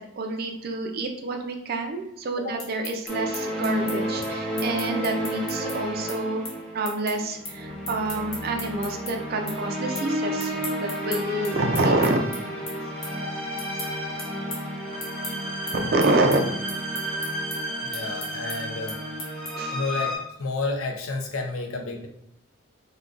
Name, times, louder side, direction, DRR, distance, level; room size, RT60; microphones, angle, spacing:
voice 1, 0.0-6.4 6.7-13.2 14.1-14.2 15.7-16.5 19.6-19.8, right 2 dB, 45° right, 4 dB, 0.4 m, -27 dB
sound 1, 2.6-9.1 9.5-10.1 10.4-19.8, left 2 dB, 70° left, 1.1 m, -38 dB
classical strings, 3.1-20.2, equal, 5° left, 0.6 m, -31 dB
voice 2, 17.8-19.0 19.7-22.1, left 3 dB, 85° left, 4 dB, 0.5 m, -31 dB
3.7 x 2.2 x 2.4 m, 0.78 s
head